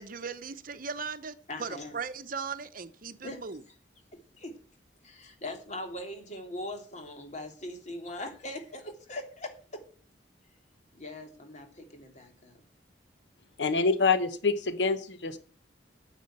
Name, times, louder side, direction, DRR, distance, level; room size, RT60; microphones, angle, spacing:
voice 1, 0.0-3.6, right 5 dB, 50° right, 0.9 m, -38 dB
voice 2, 1.5-2.0 3.2-3.7 4.3-4.5 5.0-9.8 10.9-12.6, left 1 dB, 40° left, 3.1 m, -41 dB
voice 3, 13.6-15.4, left 4 dB, 75° left, 0.9 m, -26 dB
9.5 x 8.2 x 8.7 m
head